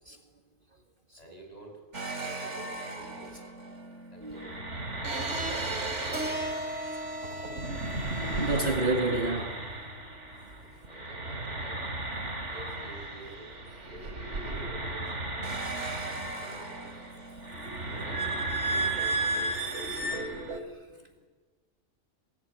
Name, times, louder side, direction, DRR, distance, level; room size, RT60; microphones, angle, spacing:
voice 1, 1.2-1.8 2.2-3.4 4.1-6.1 8.2-9.4 10.6-11.8 12.5-13.6 13.9-15.5 16.4-17.1 17.8-19.3 20.9-21.2, right 1 dB, 30° left, 6.9 m, -49 dB
sound 1, 1.9-10.6 10.8-20.6, right 2 dB, 65° right, 3.0 m, -34 dB
Keyboard (musical), 6.1-10.4, right 1 dB, 5° right, 1.9 m, -40 dB
voice 2, 8.2-9.5 12.2-12.3, right 2 dB, 45° right, 2.0 m, -29 dB
26.0 x 20.5 x 9.4 m
omnidirectional pair, 1.3 m